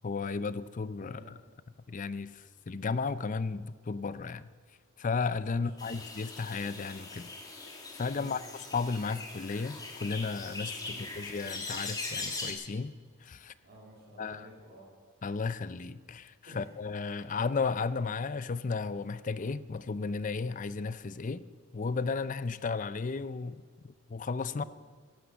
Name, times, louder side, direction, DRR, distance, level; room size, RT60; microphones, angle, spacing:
voice 1, 0.0-1.4 1.9-4.5 5.0-7.3 7.9-8.4 8.7-12.9 13.2-13.5 14.2-14.5 15.2-21.4 21.7-24.6, left 4 dB, 40° left, 15 dB, 0.5 m, -34 dB
voice 2, 1.0-1.3 5.5-6.0 8.1-8.4 10.8-11.0 13.6-14.9 16.5-16.7 24.5-24.7, equal, 50° right, -3 dB, 3.0 m, -52 dB
sound 1, 5.8-12.5, left 3 dB, 20° left, 2.1 m, -41 dB
14.0 x 11.5 x 7.0 m, 1.5 s
head